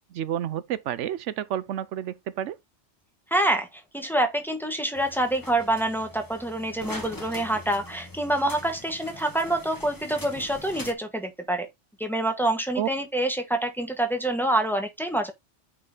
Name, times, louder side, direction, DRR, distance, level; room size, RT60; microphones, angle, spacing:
voice 1, 0.1-2.6 12.8-12.9, right 10 dB, 80° right, 1.0 m, -30 dB
voice 2, 3.3-11.7 12.0-15.3, right 1 dB, ahead, 1.6 m, -26 dB
sound 1, 4.9-10.9, left 2 dB, 20° left, 1.4 m, -42 dB
9.4 x 4.1 x 3.9 m
omnidirectional pair, 1.2 m